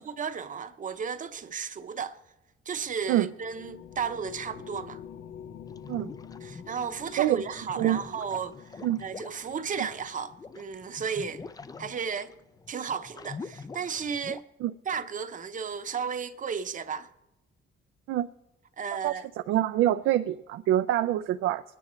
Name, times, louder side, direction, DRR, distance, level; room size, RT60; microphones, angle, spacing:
voice 1, 0.0-2.2 2.7-5.0 6.4-11.4 11.8-12.3 12.7-14.4 14.9-17.1 18.8-19.3, right 6 dB, 40° right, 0.8 m, -34 dB
sound 1, 2.8-12.6, left 8 dB, 70° left, 0.6 m, -48 dB
sound 2, 5.7-7.0 7.4-14.4, left 4 dB, 20° left, 0.4 m, -45 dB
voice 2, 19.5-21.6, right 13 dB, 80° right, 0.5 m, -25 dB
20.0 x 9.8 x 3.1 m
cardioid pair, 105°, 21 cm